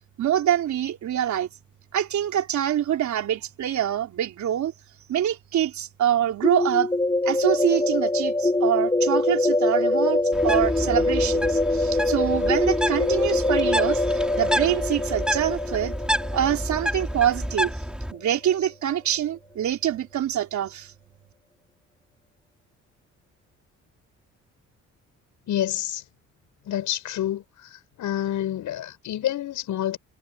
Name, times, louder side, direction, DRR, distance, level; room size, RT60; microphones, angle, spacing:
voice 1, 0.2-1.5 1.9-4.7 5.1-6.9 7.2-15.9 16.3-17.7 18.1-20.9, right 10 dB, 70° right, 3.6 m, -25 dB
sound 1, 6.4-18.1, left 2 dB, 15° left, 6.4 m, -24 dB
Bird, 10.3-18.1, equal, 5° right, 5.0 m, -29 dB
voice 2, 25.5-26.0 26.7-27.4 28.0-30.0, left 12 dB, 75° left, 7.3 m, -27 dB
cardioid pair, 90°, 30 cm